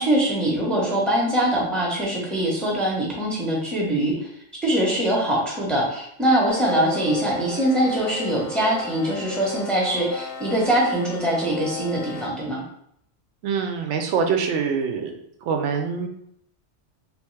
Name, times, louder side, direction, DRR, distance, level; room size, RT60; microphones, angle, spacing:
voice 1, 0.0-4.1 4.6-12.6, right 1 dB, ahead, -2 dB, 0.7 m, -23 dB
sound 1, 6.5-12.3, left 5 dB, 65° left, 0.7 m, -34 dB
voice 2, 13.4-15.1 15.4-16.1, right 6 dB, 85° right, 5 dB, 0.9 m, -24 dB
3.5 x 2.8 x 3.2 m, 0.70 s
omnidirectional pair, 1.2 m